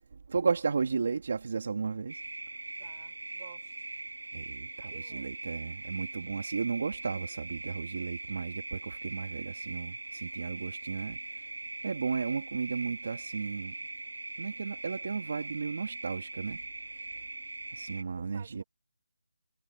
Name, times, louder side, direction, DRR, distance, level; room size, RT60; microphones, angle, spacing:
voice 1, 0.3-2.2 4.3-11.2 11.8-13.7 14.4-16.6 17.7-18.6, right 5 dB, 40° right, 2.7 m, -34 dB
sound 1, 2.1-18.0, right 2 dB, 90° right, 3.9 m, -41 dB
voice 2, 2.7-3.7 4.9-5.3 18.2-18.6, right 9 dB, 20° right, 7.0 m, -54 dB
figure-of-eight pair, 175°, 0 cm